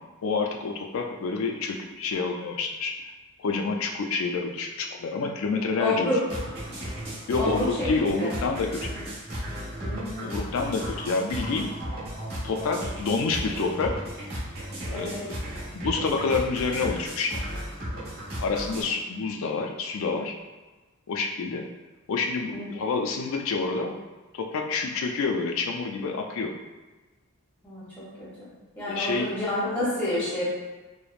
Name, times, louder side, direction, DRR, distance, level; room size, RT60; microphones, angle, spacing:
voice 1, 0.2-3.0 3.4-6.1 7.3-9.0 10.2-11.7 12.4-14.0 14.8-15.4 15.7-17.5 18.4-20.4 21.1-21.7 22.1-24.0 24.3-26.6 28.9-29.4, left 4 dB, 65° left, 3 dB, 0.3 m, -28 dB
voice 2, 5.8-6.2 7.4-8.3 9.8-10.6 14.9-15.2 22.5-22.6 27.6-28.5 28.8-30.5, left 1 dB, 5° left, -9 dB, 0.8 m, -29 dB
sound 1, 6.3-18.8, equal, 50° right, 1.0 m, -35 dB
3.1 x 2.0 x 2.4 m, 1.2 s
head